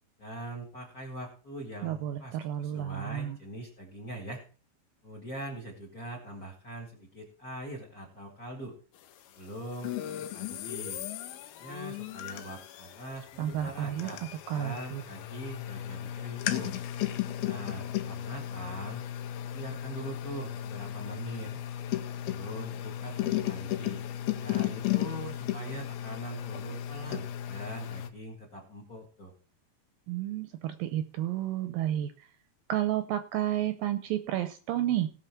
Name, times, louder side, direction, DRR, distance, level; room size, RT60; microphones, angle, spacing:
voice 1, 0.2-4.4 5.0-8.7 9.4-11.0 11.6-14.2 14.5-16.8 17.4-19.0 19.5-21.5 22.2-24.0 24.4-29.3, right 1 dB, 30° left, 1 dB, 1.7 m, -42 dB
voice 2, 1.8-3.4 13.4-15.0 30.1-32.1 32.7-35.1, right 12 dB, 80° right, 10 dB, 2.2 m, -31 dB
sound 1, 9.8-28.1, left 12 dB, 80° left, 2.7 m, -35 dB
18.0 x 6.2 x 4.4 m, 0.38 s
omnidirectional pair, 4.5 m